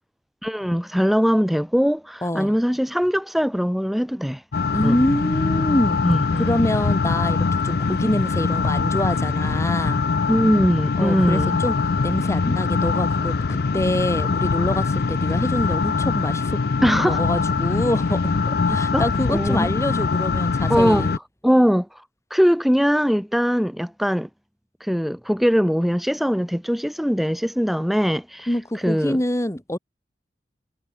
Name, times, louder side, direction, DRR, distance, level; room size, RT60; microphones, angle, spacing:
voice 1, 0.4-4.4 4.8-5.0 6.0-6.5 10.3-11.6 16.8-17.2 18.7-19.7 20.7-21.1 21.4-22.0 22.3-24.3 24.8-29.2, equal, ahead, 1.1 m, -21 dB
voice 2, 2.2-2.5 4.7-6.0 6.4-10.0 11.0-11.8 12.0-16.6 17.0-21.2 28.5-29.8, left 1 dB, 15° left, 2.1 m, -25 dB
sound 1, 4.5-21.2, left 4 dB, 60° left, 0.5 m, -23 dB
head